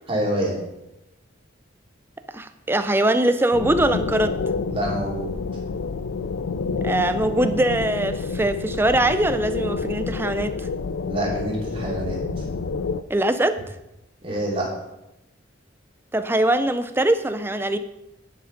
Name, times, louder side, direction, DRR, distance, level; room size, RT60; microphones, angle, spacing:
voice 1, 0.1-0.6 4.7-5.3 11.1-12.5 14.2-14.7, right 1 dB, 30° right, -4 dB, 3.0 m, -26 dB
voice 2, 2.3-4.4 6.8-10.7 13.1-13.6 16.1-17.8, right 1 dB, 10° right, 10 dB, 0.5 m, -22 dB
sound 1, 3.5-13.0, left 4 dB, 90° left, 0.5 m, -28 dB
11.0 x 7.1 x 5.1 m, 0.92 s
head